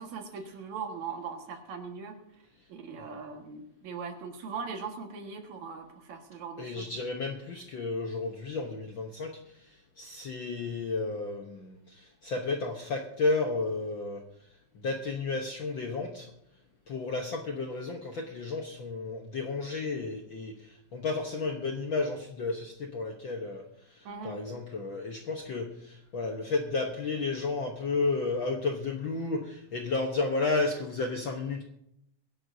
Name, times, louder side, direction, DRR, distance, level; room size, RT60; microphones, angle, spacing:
voice 1, 0.0-2.1 2.7-7.0 24.0-24.4, right 5 dB, 70° right, 4 dB, 3.0 m, -40 dB
voice 2, 6.6-14.3 14.7-16.3 16.9-23.6 23.9-31.6, left 3 dB, 60° left, 3 dB, 1.3 m, -32 dB
23.0 x 11.0 x 2.7 m, 0.76 s
omnidirectional pair, 3.5 m